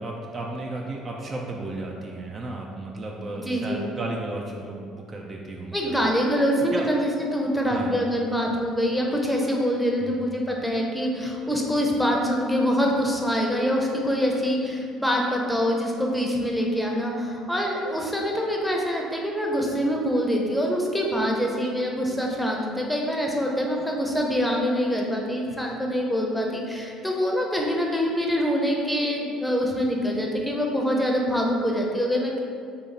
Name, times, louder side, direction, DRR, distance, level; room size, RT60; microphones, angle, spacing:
voice 1, 0.0-6.0 6.6-6.9 7.7-7.9 10.0-10.2, right 2 dB, 40° right, -1 dB, 0.4 m, -34 dB
voice 2, 3.4-3.8 5.7-32.4, equal, 5° left, -1 dB, 0.6 m, -25 dB
2.8 x 2.5 x 4.1 m, 2.3 s
hypercardioid pair, 65°, 0 cm